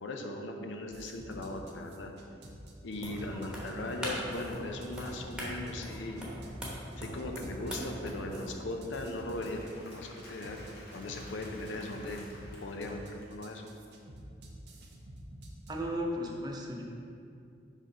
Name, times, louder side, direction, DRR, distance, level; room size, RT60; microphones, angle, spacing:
voice 1, 0.0-2.1 2.8-6.3 7.0-10.7 10.9-12.2 12.6-13.7, left 2 dB, 80° left, 3 dB, 0.6 m, -38 dB
sound 1, 0.9-15.8, right 1 dB, 65° right, 0.7 m, -49 dB
sound 2, 2.9-8.6, equal, 5° right, 1.0 m, -41 dB
Applause, 8.1-13.7, left 1 dB, 55° left, 1.4 m, -54 dB
voice 2, 15.7-16.9, equal, 20° right, -1 dB, 0.6 m, -35 dB
5.3 x 3.7 x 5.3 m, 2.5 s
head